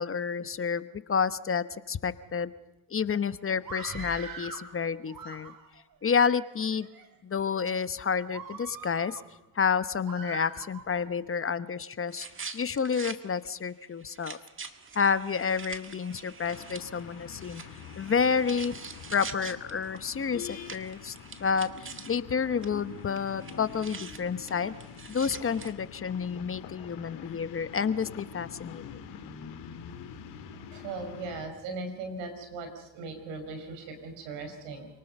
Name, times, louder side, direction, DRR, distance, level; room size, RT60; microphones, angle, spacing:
voice 1, 0.0-2.5 2.9-5.5 6.0-6.9 7.2-9.2 9.5-12.3 12.5-14.4 14.9-17.6 18.0-18.8 19.1-21.1 21.4-24.8 25.1-28.8, left 6 dB, 30° left, 14 dB, 1.0 m, -29 dB
Screaming, 3.6-4.7 5.1-5.8 6.5-7.1 7.6-7.8 8.3-9.2 10.0-11.1, right 5 dB, 55° right, 3.7 m, -42 dB
sound 1, 12.1-13.2 13.6-13.7 14.0-22.3 22.6-22.7 22.9-25.7, right 5 dB, 30° right, 1.8 m, -45 dB
sound 2, 16.4-31.5, left 7 dB, 80° left, 2.8 m, -45 dB
voice 2, 30.7-34.9, right 3 dB, 85° right, 6 dB, 5.5 m, -38 dB
28.0 x 19.0 x 5.5 m, 1.0 s
supercardioid pair, 80°, 41 cm